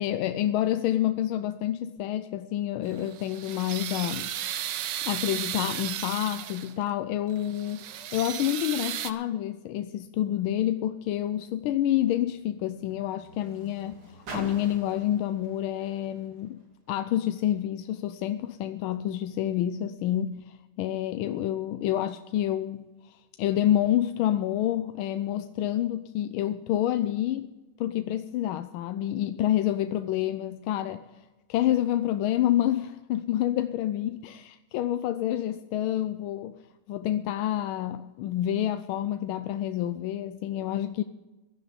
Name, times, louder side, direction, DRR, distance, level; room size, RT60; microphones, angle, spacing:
voice 1, 0.0-4.3 5.0-16.6 16.9-27.5 27.8-31.1 31.5-36.5 36.9-41.0, left 12 dB, 80° left, 1.4 m, -28 dB
sound 1, 2.9-6.8 7.3-9.1, right 11 dB, 65° right, 1.2 m, -35 dB
Car, 10.7-17.3 18.1-18.2, right 2 dB, 85° right, 3.5 m, -47 dB
17.0 x 11.0 x 5.1 m
omnidirectional pair, 2.3 m